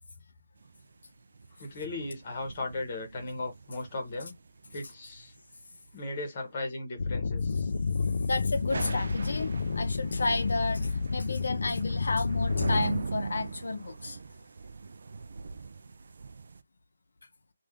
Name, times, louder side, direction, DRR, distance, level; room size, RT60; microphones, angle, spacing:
sound 1, 0.6-6.1 8.5-16.6, right 4 dB, 45° right, 0.3 m, -41 dB
voice 1, 1.6-4.3 4.7-5.3 5.9-7.7, left 2 dB, 20° left, 1.0 m, -37 dB
sound 2, 7.0-12.8, left 4 dB, 40° left, 0.3 m, -30 dB
voice 2, 8.0-14.2, left 3 dB, 60° left, 0.7 m, -32 dB
3.4 x 2.4 x 3.6 m
hypercardioid pair, 180°, 0 cm